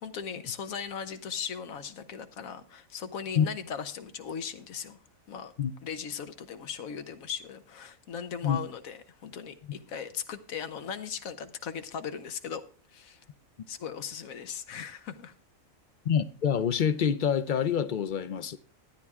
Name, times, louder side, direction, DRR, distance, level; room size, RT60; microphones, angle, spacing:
voice 1, 0.0-5.0 5.3-5.5 5.8-12.6 12.9-13.2 13.7-15.3, left 7 dB, 90° left, 1.3 m, -38 dB
voice 2, 16.1-18.6, left 8 dB, 55° left, 0.5 m, -26 dB
13.0 x 9.6 x 3.6 m
omnidirectional pair, 1.4 m